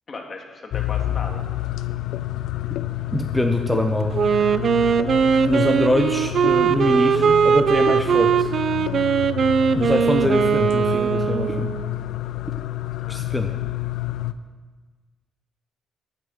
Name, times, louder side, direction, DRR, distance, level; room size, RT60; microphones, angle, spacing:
voice 1, 0.1-1.5 13.0-13.2, left 3 dB, 40° left, 2 dB, 1.6 m, -36 dB
sound 1, 0.7-14.3, left 14 dB, 85° left, 0.4 m, -28 dB
voice 2, 3.1-4.2 5.4-8.5 9.8-11.7 13.1-13.5, left 1 dB, ahead, 4 dB, 0.6 m, -24 dB
Wind instrument woodwind instrument, 4.1-11.9, right 7 dB, 55° right, 0.4 m, -20 dB
9.8 x 8.0 x 5.0 m, 1.4 s
cardioid pair, 90°, 0 cm